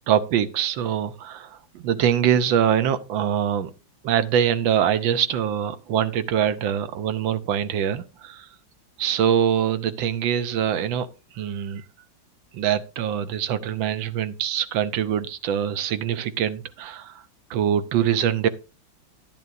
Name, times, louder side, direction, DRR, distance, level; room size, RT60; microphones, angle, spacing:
voice 1, 0.1-3.7 4.0-8.5 9.0-11.1 11.3-11.8 12.5-17.2 17.5-18.5, right 9 dB, 85° right, 1.5 m, -23 dB
10.5 x 10.5 x 2.6 m
omnidirectional pair, 2.0 m